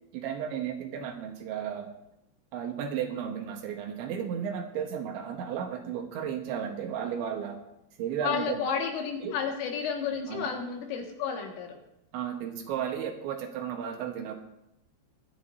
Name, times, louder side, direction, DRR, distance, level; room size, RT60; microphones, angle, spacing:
voice 1, 0.1-1.9 2.5-7.6 8.0-8.6 9.2-9.3 10.3-10.5 12.1-14.3, right 8 dB, 75° right, 3 dB, 3.3 m, -34 dB
voice 2, 8.2-11.8, left 6 dB, 80° left, 1 dB, 4.3 m, -31 dB
24.0 x 10.5 x 2.7 m, 0.87 s
omnidirectional pair, 5.7 m